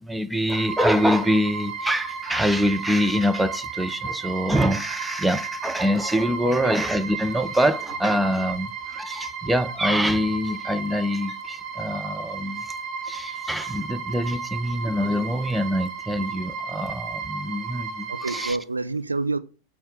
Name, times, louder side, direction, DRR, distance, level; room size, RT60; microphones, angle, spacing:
voice 1, 0.0-12.6 13.0-18.6, equal, 5° right, 0.5 m, -24 dB
sound 1, 0.5-18.5, right 5 dB, 30° right, 1.2 m, -34 dB
voice 2, 18.1-19.4, right 3 dB, 80° right, 0.5 m, -28 dB
8.6 x 3.2 x 4.8 m
figure-of-eight pair, 90°, 0 cm